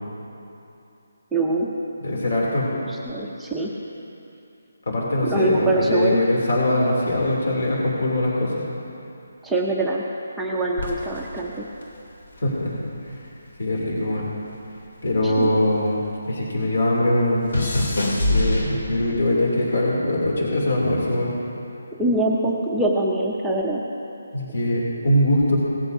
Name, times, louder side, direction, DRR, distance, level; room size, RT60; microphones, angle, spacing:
voice 1, 1.3-1.7 2.9-3.7 5.2-6.2 9.4-10.0 10.4-11.7 15.2-15.5 22.0-23.9, right 2 dB, ahead, -5 dB, 0.6 m, -23 dB
voice 2, 2.0-2.7 4.9-8.6 12.4-12.7 13.1-13.2 13.6-14.3 15.0-16.0 16.2-17.4 18.0-21.3 24.3-25.6, left 1 dB, 60° left, -4 dB, 2.8 m, -22 dB
sound 1, 10.8-13.3 13.5-16.2 16.5-19.3 20.0-20.4, left 1 dB, 80° left, 3.0 m, -27 dB
18.5 x 14.0 x 2.7 m, 2.8 s
hypercardioid pair, 175°, 0 cm